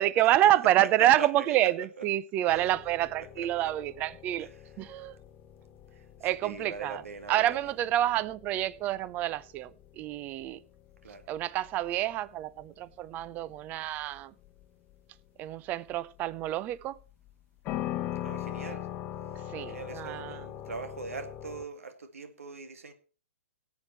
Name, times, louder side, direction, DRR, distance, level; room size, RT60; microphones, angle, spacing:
voice 1, 0.0-4.5 4.8-5.2 6.2-7.0 7.3-9.7 10.0-10.6 11.3-14.3 15.4-17.0 19.5-20.5, right 13 dB, 25° right, 0.6 m, -28 dB
voice 2, 0.8-1.7 2.5-2.7 3.4-3.7 4.4-4.5 6.4-7.6 11.0-11.2 18.2-18.9 19.7-22.9, right 4 dB, 85° right, 2.2 m, -41 dB
sound 1, 2.5-21.7, left 12 dB, 25° left, 1.0 m, -42 dB
16.5 x 8.3 x 4.5 m
hypercardioid pair, 145°, 7 cm